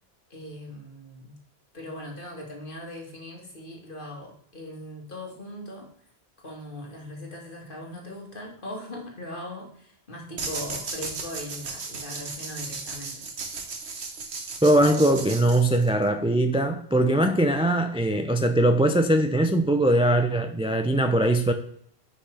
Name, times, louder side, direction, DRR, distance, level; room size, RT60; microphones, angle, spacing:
voice 1, 0.3-1.4 1.7-5.9 6.4-13.3, left 1 dB, 50° left, 0 dB, 2.0 m, -39 dB
sound 1, 10.4-16.1, right 4 dB, 80° right, 1.4 m, -36 dB
voice 2, 14.6-21.5, right 1 dB, 10° right, 7 dB, 0.3 m, -21 dB
9.8 x 5.7 x 3.3 m, 0.66 s
omnidirectional pair, 1.1 m